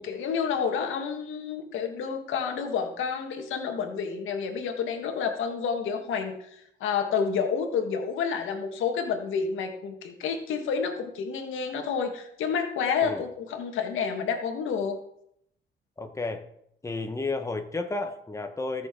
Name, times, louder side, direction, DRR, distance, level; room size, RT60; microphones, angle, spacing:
voice 1, 0.0-15.0, left 6 dB, 85° left, 5 dB, 1.7 m, -29 dB
voice 2, 16.0-16.4 16.8-18.9, left 3 dB, 15° left, 6 dB, 1.3 m, -32 dB
19.5 x 6.7 x 3.8 m, 0.73 s
cardioid pair, 90°, 20 cm